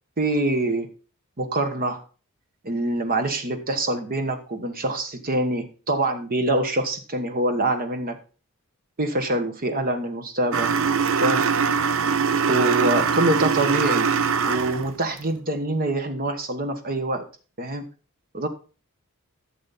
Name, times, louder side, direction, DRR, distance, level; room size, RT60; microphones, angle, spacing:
voice 1, 0.2-0.9 1.4-2.0 2.6-8.2 9.0-10.7 11.2-11.5 12.5-14.1 14.5-17.3 17.6-17.9 18.3-18.5, right 1 dB, 40° right, 7 dB, 1.2 m, -25 dB
sound 1, 10.5-14.9, right 6 dB, 65° right, 0.7 m, -22 dB
12.5 x 7.0 x 4.0 m, 0.36 s
head